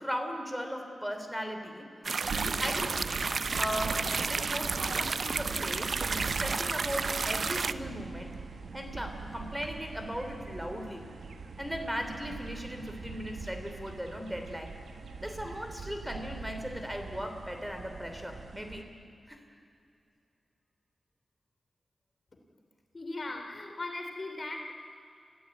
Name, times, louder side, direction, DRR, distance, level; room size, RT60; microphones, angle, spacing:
voice 1, 0.0-1.9 2.3-2.9 3.6-8.4 8.7-11.0 11.6-14.7 15.2-18.8 19.3-19.4, equal, 5° right, 5 dB, 3.2 m, -37 dB
sound 1, 2.0-7.7, right 4 dB, 60° right, 0.6 m, -31 dB
sound 2, 2.2-18.8, right 4 dB, 85° right, 1.7 m, -42 dB
voice 2, 22.9-24.7, left 2 dB, 45° left, 3 dB, 3.0 m, -38 dB
26.0 x 15.5 x 8.6 m, 2.6 s
cardioid pair, 60°, 0 cm